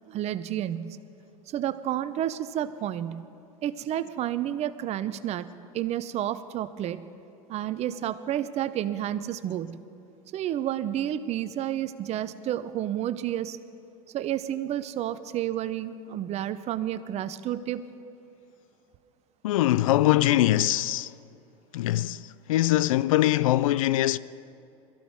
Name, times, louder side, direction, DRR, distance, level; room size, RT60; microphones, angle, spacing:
voice 1, 0.1-1.0 1.5-3.3 3.6-5.5 5.7-7.0 7.5-9.8 10.3-13.6 14.1-17.9, right 11 dB, 40° right, 0.7 m, -30 dB
voice 2, 19.4-21.1 21.7-24.2, left 14 dB, 70° left, 0.4 m, -22 dB
21.5 x 14.0 x 3.6 m
hypercardioid pair, 90°, 18 cm